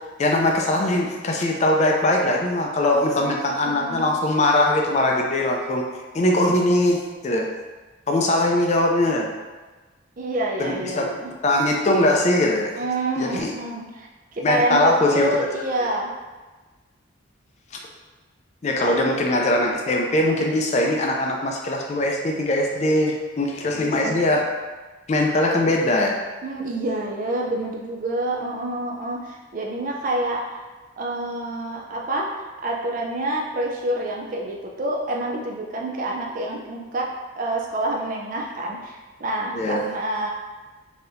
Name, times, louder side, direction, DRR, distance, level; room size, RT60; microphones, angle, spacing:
voice 1, 0.2-5.8 6.1-7.5 8.1-9.3 10.6-11.0 11.4-12.7 13.2-13.5 14.4-15.3 18.6-24.5 25.1-26.1 39.5-39.8, left 1 dB, 35° left, 1 dB, 0.4 m, -21 dB
voice 2, 3.2-4.1 10.2-11.3 12.7-14.8 15.1-16.1 18.8-19.0 23.6-24.2 26.4-30.6 31.0-37.1 37.4-40.3, right 1 dB, 40° right, -1 dB, 0.4 m, -28 dB
3.9 x 2.8 x 2.6 m, 1.3 s
head